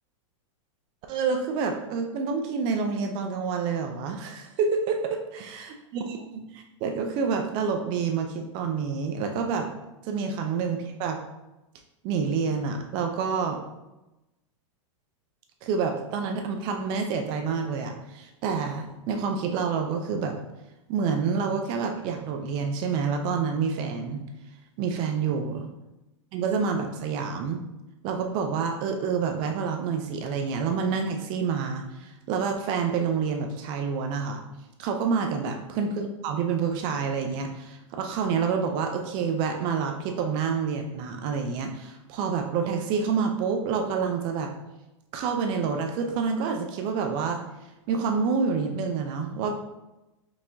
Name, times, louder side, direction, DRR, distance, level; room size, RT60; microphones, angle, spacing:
voice 1, 1.1-5.0 5.3-9.7 10.0-11.2 12.0-13.6 15.6-20.4 20.9-24.2 24.8-25.7 26.3-27.6 28.0-34.4 34.8-44.5 45.1-47.4 47.9-49.5, right 5 dB, 30° right, 4 dB, 0.4 m, -28 dB
4.6 x 3.4 x 2.6 m, 0.98 s
supercardioid pair, 155°, 16 cm